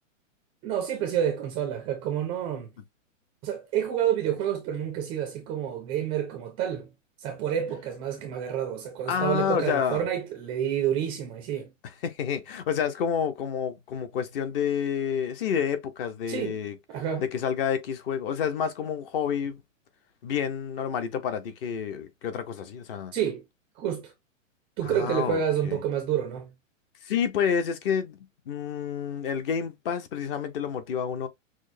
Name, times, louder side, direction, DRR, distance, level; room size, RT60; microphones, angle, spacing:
voice 1, 0.6-2.7 3.4-6.9 7.2-11.7 16.3-16.6 16.9-17.2 23.1-23.4 23.8-24.1 24.8-26.5, right 9 dB, 15° right, 0.4 m, -29 dB
voice 2, 9.1-10.0 12.0-16.8 17.2-19.6 20.2-23.1 24.8-25.8 27.0-28.2 28.5-31.3, left 7 dB, 45° left, 0.8 m, -29 dB
6.1 x 2.1 x 2.6 m
hypercardioid pair, 135°, 39 cm